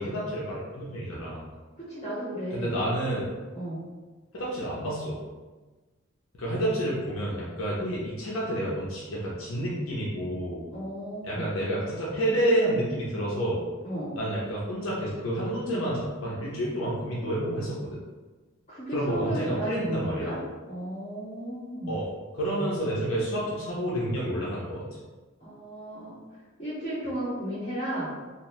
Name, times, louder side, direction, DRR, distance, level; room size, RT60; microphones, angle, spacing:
voice 1, 0.0-1.4 2.5-3.3 4.3-5.2 6.3-10.7 11.2-13.6 14.2-18.0 18.9-20.3 21.9-22.1 22.3-24.8, right 1 dB, 80° left, -6 dB, 0.6 m, -29 dB
voice 2, 1.8-2.8 3.5-3.8 10.7-11.6 13.8-14.1 18.7-20.4 20.7-22.1 25.4-26.2 26.6-28.1, right 1 dB, 30° left, -11 dB, 1.4 m, -34 dB
2.8 x 2.1 x 3.1 m, 1.3 s
head